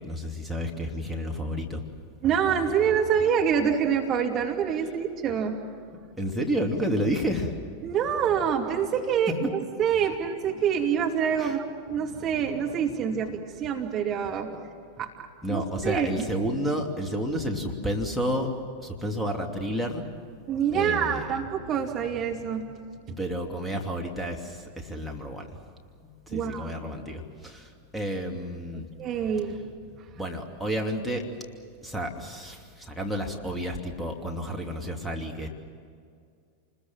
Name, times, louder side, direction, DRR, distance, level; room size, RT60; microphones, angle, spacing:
voice 1, 0.0-1.8 6.2-7.5 11.4-11.6 15.4-18.5 18.8-20.0 20.7-21.3 23.2-25.6 26.0-28.9 30.2-31.3 31.8-35.5, equal, ahead, 1 dB, 2.9 m, -31 dB
voice 2, 2.2-5.6 7.8-14.5 15.0-16.3 20.5-22.7 23.1-23.2 26.3-26.7 28.7-30.1, right 7 dB, 30° right, 1 dB, 2.7 m, -26 dB
28.5 x 21.0 x 7.5 m, 2.2 s
figure-of-eight pair, 90°, 0 cm